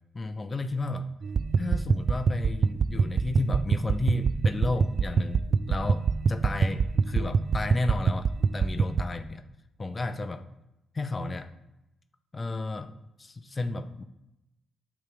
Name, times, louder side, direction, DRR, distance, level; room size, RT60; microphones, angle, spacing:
voice 1, 0.1-1.1 1.6-9.4 9.8-10.5 10.9-11.5 12.3-12.9 13.2-14.0, left 2 dB, 35° left, 8 dB, 0.7 m, -32 dB
sound 1, 1.2-9.0, right 5 dB, 60° right, 0.4 m, -26 dB
9.4 x 3.5 x 6.8 m, 0.89 s
supercardioid pair, 55°, 0 cm